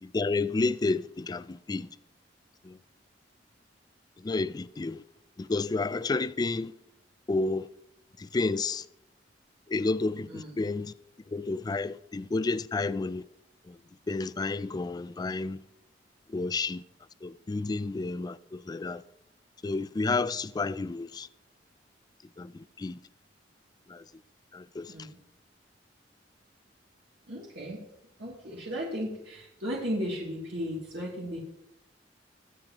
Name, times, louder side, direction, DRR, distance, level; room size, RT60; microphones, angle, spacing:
voice 1, 0.0-1.9 2.7-2.8 4.2-5.0 5.4-6.7 7.3-7.7 8.3-8.8 9.7-10.9 11.3-13.2 14.1-15.6 16.3-16.8 17.2-19.0 19.6-21.3 22.4-22.5 22.8-23.0 23.9-24.0 24.5-24.9, left 3 dB, 20° left, 0.3 m, -30 dB
voice 2, 10.3-10.6 24.9-25.2 27.3-27.8 28.2-31.4, equal, 70° right, 2.6 m, -35 dB
22.0 x 7.6 x 3.0 m
head